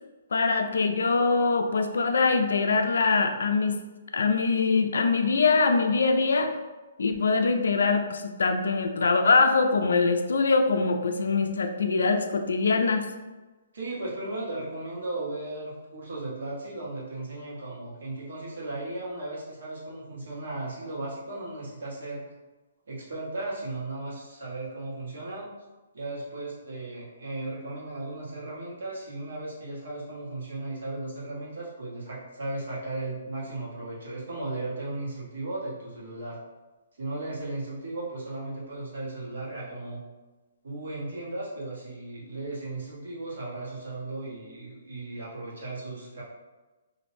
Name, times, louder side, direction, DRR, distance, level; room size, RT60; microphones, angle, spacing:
voice 1, 0.3-3.8 4.1-6.6 7.0-13.1, left 4 dB, 85° left, 6 dB, 0.3 m, -23 dB
voice 2, 13.7-22.2 22.9-25.5 25.9-36.4 37.0-40.0 40.6-46.2, right 2 dB, 65° right, -6 dB, 1.1 m, -36 dB
2.5 x 2.0 x 3.0 m, 1.2 s
hypercardioid pair, 175°, 0 cm